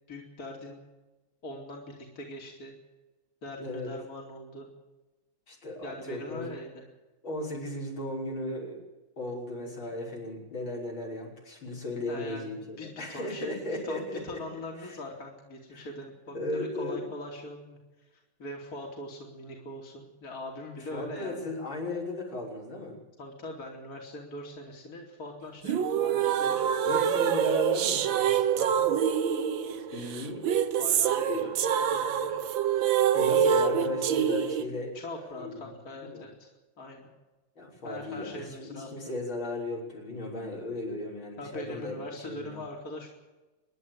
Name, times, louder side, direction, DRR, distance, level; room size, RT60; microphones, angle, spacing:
voice 1, 0.1-0.8 1.4-2.7 3.4-4.7 5.8-6.7 12.1-17.8 18.4-21.5 23.2-26.6 26.9-27.0 28.6-29.0 30.8-32.4 34.9-37.1 37.8-38.9 41.4-43.1, left 1 dB, 45° left, 0 dB, 3.3 m, -42 dB
voice 2, 3.6-3.9 5.5-6.5 7.2-8.8 9.2-14.4 14.8-15.0 15.7-15.9 16.3-17.0 20.9-23.0 26.8-28.5 29.9-30.4 31.3-31.4 33.1-35.7 36.0-36.2 37.6-42.0 42.2-42.6, left 2 dB, 85° left, -3 dB, 6.7 m, -36 dB
sound 1, 25.6-34.6, right 8 dB, 75° right, 1.7 m, -26 dB
26.0 x 11.0 x 9.2 m, 1.1 s
omnidirectional pair, 2.1 m